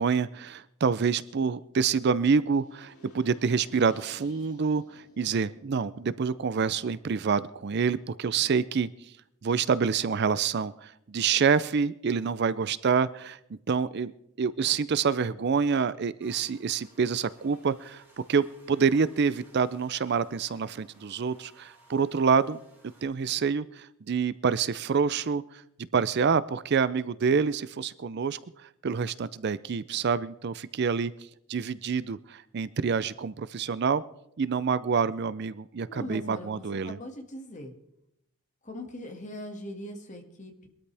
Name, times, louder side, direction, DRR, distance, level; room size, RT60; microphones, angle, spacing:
voice 1, 0.0-8.9 9.4-13.4 13.7-14.1 14.4-18.0 18.3-22.6 23.0-25.4 25.9-31.1 31.5-34.0 34.4-37.0, right 5 dB, 50° right, 16 dB, 0.4 m, -27 dB
sound 1, 2.6-8.6, left 1 dB, 80° left, 5.2 m, -57 dB
Buzz, 16.2-23.0, right 1 dB, 10° right, 7.8 m, -59 dB
voice 2, 35.9-37.7 38.6-40.7, left 1 dB, 35° left, 4 dB, 1.9 m, -41 dB
22.0 x 13.0 x 3.4 m, 0.79 s
head